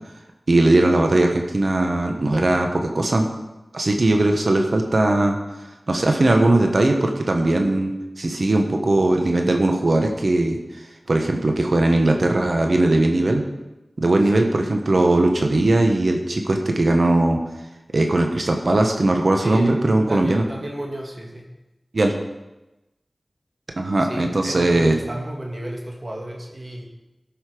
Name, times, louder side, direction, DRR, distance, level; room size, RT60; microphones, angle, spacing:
voice 1, 0.5-3.2 3.7-5.4 5.9-10.6 11.1-13.4 14.0-17.4 17.9-20.4 21.9-22.1 23.8-25.0, right 2 dB, 65° right, 3 dB, 1.2 m, -19 dB
voice 2, 19.4-19.8 20.1-21.5 24.1-26.9, right 1 dB, 50° right, 0 dB, 2.0 m, -33 dB
13.0 x 5.7 x 5.0 m, 1.0 s
wide cardioid pair, 45°, 0 cm